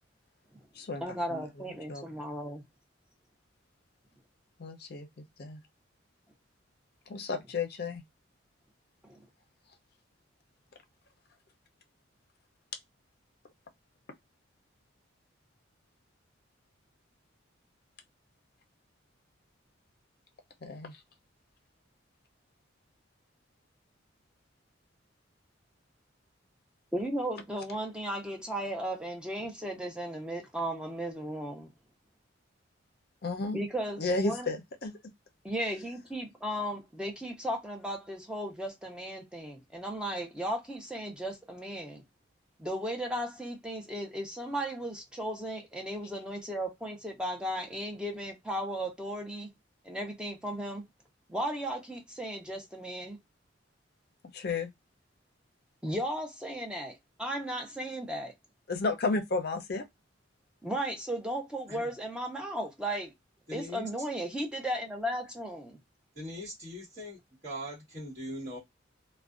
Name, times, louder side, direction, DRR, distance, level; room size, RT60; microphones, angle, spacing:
voice 1, 1.0-2.6 9.0-9.2 26.9-31.7 33.5-34.5 35.4-42.0 42.6-49.5 49.8-50.8 51.3-53.2 55.8-58.3 60.6-63.1 63.5-65.8, right 1 dB, 5° right, 0.5 m, -35 dB
voice 2, 4.6-5.1 5.4-5.6 7.1-8.0 20.6-21.0 33.2-33.6 34.0-34.9 54.3-54.7 58.7-59.8, left 3 dB, 55° left, 0.5 m, -32 dB
voice 3, 63.5-63.9 66.1-67.2 67.4-68.6, equal, 35° right, 1.3 m, -40 dB
2.4 x 2.1 x 2.3 m
head